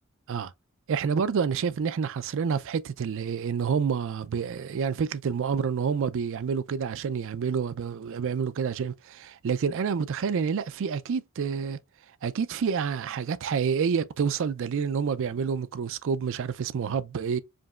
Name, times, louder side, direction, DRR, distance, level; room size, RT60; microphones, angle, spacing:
voice 1, 0.9-11.8 12.2-17.4, right 6 dB, 60° right, 0.4 m, -28 dB
5.1 x 2.9 x 2.3 m
head